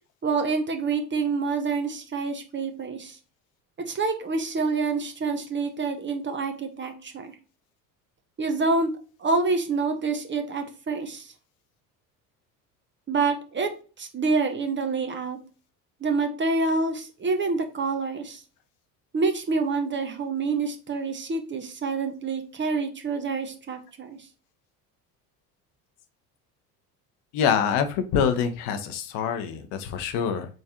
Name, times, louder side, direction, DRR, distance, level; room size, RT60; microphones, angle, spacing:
voice 1, 0.2-3.2 3.9-7.3 8.4-8.9 9.2-11.3 13.1-13.7 14.0-15.4 16.0-18.4 19.1-24.2, right 4 dB, 25° right, 5 dB, 0.9 m, -27 dB
voice 2, 27.3-30.5, left 7 dB, 60° left, 9 dB, 0.8 m, -25 dB
3.6 x 3.1 x 2.8 m, 0.36 s
hypercardioid pair, 65°, 47 cm